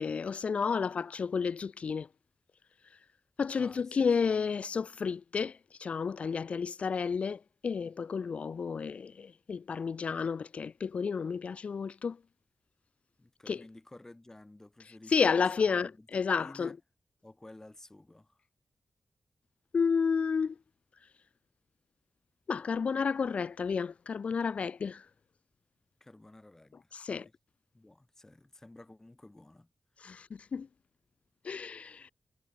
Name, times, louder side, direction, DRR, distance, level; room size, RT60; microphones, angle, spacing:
voice 1, 0.0-2.1 2.8-3.0 3.4-12.2 13.5-13.6 15.1-16.7 19.7-20.6 21.0-21.1 22.5-25.1 26.9-27.2 30.0-30.7 31.4-32.1, left 5 dB, 70° left, 0.4 m, -31 dB
voice 2, 3.6-4.3 13.2-15.3 15.6-16.1 16.4-16.8 17.2-18.4 26.0-27.3 27.7-29.7 30.0-30.1, left 2 dB, 20° left, 7.9 m, -53 dB
cardioid pair, 70°, 2 cm